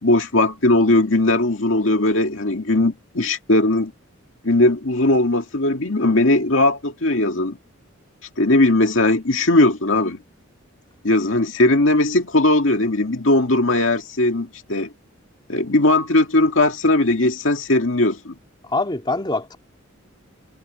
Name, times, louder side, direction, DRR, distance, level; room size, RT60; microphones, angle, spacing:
voice 1, 0.0-3.9 4.4-7.6 8.4-10.2 11.0-14.9 15.5-18.4, left 2 dB, 70° left, 2.2 m, -18 dB
voice 2, 18.6-19.6, left 2 dB, 25° left, 3.1 m, -24 dB
head